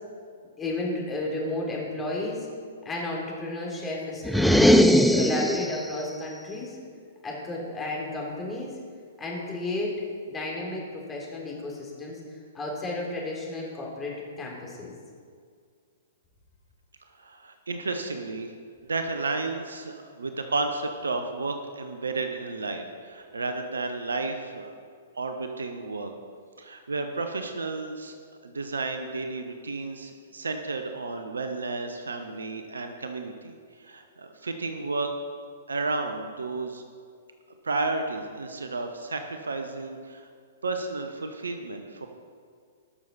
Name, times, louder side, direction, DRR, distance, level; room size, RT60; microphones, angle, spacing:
voice 1, 0.6-2.5 2.9-4.7 5.1-6.8 7.2-8.7 9.2-14.9, left 2 dB, 15° left, -3 dB, 3.5 m, -33 dB
sound 1, 4.2-5.9, equal, ahead, 0.5 m, -19 dB
voice 2, 17.2-18.5 18.8-24.7 25.1-26.1 26.6-28.2 28.4-35.1 35.7-36.8 37.6-40.3 40.6-42.1, right 3 dB, 80° right, 6 dB, 1.0 m, -32 dB
19.5 x 6.8 x 4.2 m, 2.1 s
figure-of-eight pair, 115°, 0 cm